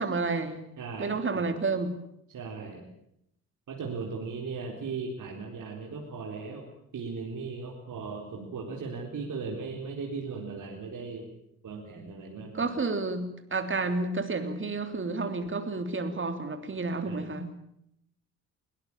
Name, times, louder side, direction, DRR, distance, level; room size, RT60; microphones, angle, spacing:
voice 1, 0.0-0.6 1.0-2.0 12.5-17.6, right 3 dB, 30° right, 9 dB, 3.3 m, -30 dB
voice 2, 0.8-1.5 2.3-2.8 3.7-11.3 11.6-12.7 17.1-17.2, right 4 dB, 45° right, 0 dB, 4.1 m, -37 dB
22.0 x 19.0 x 8.8 m, 0.76 s
figure-of-eight pair, 50°, 41 cm